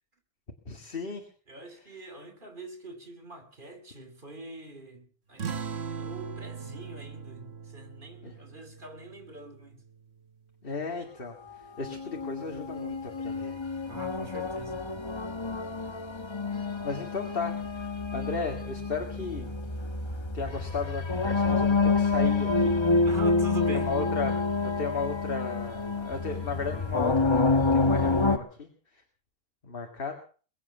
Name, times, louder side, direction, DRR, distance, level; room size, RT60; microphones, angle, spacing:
voice 1, 0.7-1.3 1.7-2.0 8.2-8.3 10.6-13.6 14.1-14.3 14.8-15.0 16.5-19.6 20.3-22.7 23.7-24.4 24.6-29.0 29.6-30.1, left 4 dB, 55° left, 2.2 m, -35 dB
voice 2, 1.5-5.5 6.0-9.8 13.9-14.9 23.0-23.9, right 2 dB, 50° right, 3.0 m, -43 dB
sound 1, 5.4-10.4, right 6 dB, 70° right, 1.6 m, -40 dB
sound 2, 11.8-28.4, left 3 dB, 25° left, 1.1 m, -28 dB
22.5 x 8.7 x 7.1 m
omnidirectional pair, 1.1 m